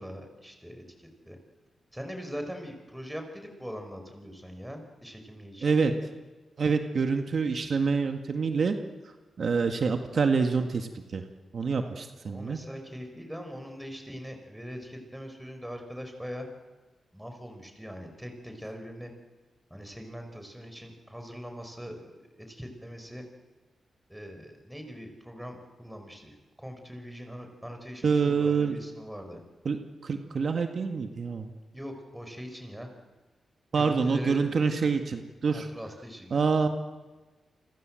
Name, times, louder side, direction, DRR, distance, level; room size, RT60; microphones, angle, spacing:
voice 1, 0.0-1.4 1.9-5.8 11.8-11.9 12.2-16.5 17.1-19.1 19.7-23.2 24.1-29.4 31.7-32.9 33.7-34.4 35.5-36.6, equal, 5° right, 5 dB, 5.6 m, -42 dB
voice 2, 5.6-5.9 6.6-8.8 9.0-11.2 11.5-12.6 28.0-28.8 29.7-31.5 33.7-35.7 36.3-36.7, right 5 dB, 60° right, 5 dB, 1.9 m, -26 dB
29.5 x 25.5 x 7.8 m, 1.3 s
cardioid pair, 80°, 0 cm